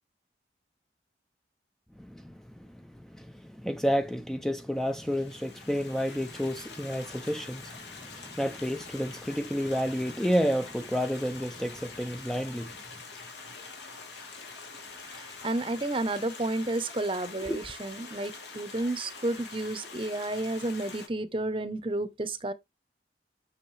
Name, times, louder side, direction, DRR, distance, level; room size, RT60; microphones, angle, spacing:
voice 1, 2.0-12.8 17.5-17.6, equal, ahead, 0.4 m, -31 dB
Stream, 4.8-21.1, left 4 dB, 75° left, 2.9 m, -45 dB
voice 2, 15.4-22.5, right 2 dB, 30° right, 0.8 m, -31 dB
8.1 x 6.3 x 3.2 m
head